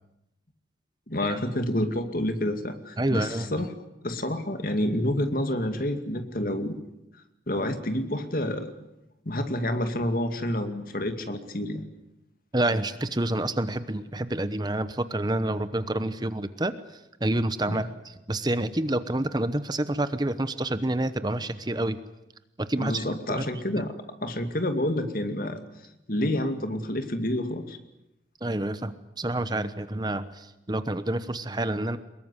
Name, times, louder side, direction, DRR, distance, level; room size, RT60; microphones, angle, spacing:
voice 1, 1.1-3.7 4.0-6.8 7.5-8.7 9.3-11.8 17.7-17.8 22.8-23.9 24.2-25.6 26.1-27.8, left 1 dB, 50° left, 7 dB, 2.4 m, -28 dB
voice 2, 3.0-3.7 12.5-16.7 17.2-22.0 22.6-23.0 23.3-23.4 28.4-32.0, right 1 dB, 20° right, 12 dB, 0.9 m, -28 dB
23.5 x 21.5 x 9.8 m, 0.89 s
head